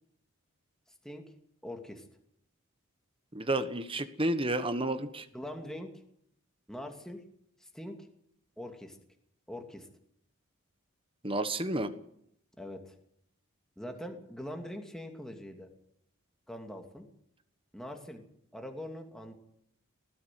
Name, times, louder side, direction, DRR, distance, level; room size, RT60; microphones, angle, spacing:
voice 1, 1.6-2.1 5.3-5.9 6.7-7.2 7.6-8.0 8.6-9.0 9.5-9.9 12.6-12.9 13.8-15.7 16.5-17.1 17.7-18.2 18.5-19.3, left 1 dB, ahead, 3 dB, 2.6 m, -42 dB
voice 2, 3.3-5.3 11.2-11.9, right 1 dB, 25° right, 11 dB, 1.3 m, -31 dB
20.0 x 14.5 x 9.4 m, 0.72 s
head